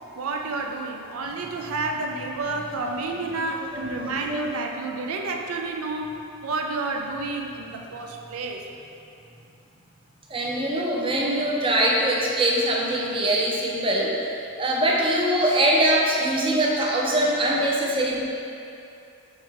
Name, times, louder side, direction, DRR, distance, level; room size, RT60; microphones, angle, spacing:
voice 1, 0.1-8.7, right 3 dB, 85° right, 3 dB, 0.5 m, -30 dB
voice 2, 3.5-4.4 10.3-14.3 14.6-18.2, right 1 dB, 25° right, -2 dB, 0.6 m, -23 dB
6.3 x 4.6 x 3.7 m, 2.7 s
head